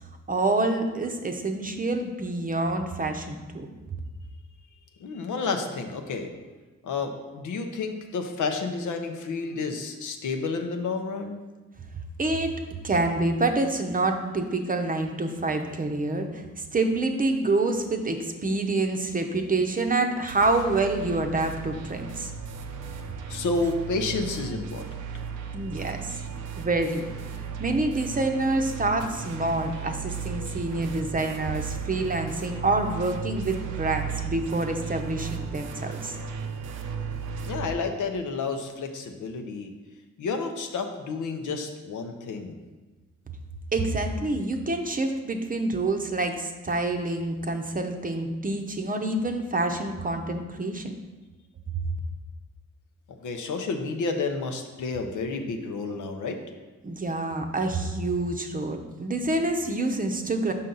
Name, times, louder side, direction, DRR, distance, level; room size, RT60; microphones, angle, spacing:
voice 1, 0.3-3.7 12.2-12.6 12.8-16.4 16.7-22.3 25.5-26.2 26.6-27.1 27.6-36.2 43.7-50.9 56.8-60.5, right 2 dB, 30° right, 5 dB, 0.7 m, -27 dB
voice 2, 5.0-6.3 6.8-11.4 23.3-24.9 37.4-39.7 40.2-42.6 53.1-56.4, left 4 dB, 85° left, 5 dB, 0.7 m, -30 dB
sound 1, 20.3-37.7, right 6 dB, 85° right, 0.6 m, -35 dB
5.6 x 5.4 x 3.9 m, 1.2 s
cardioid pair, 75°, 30 cm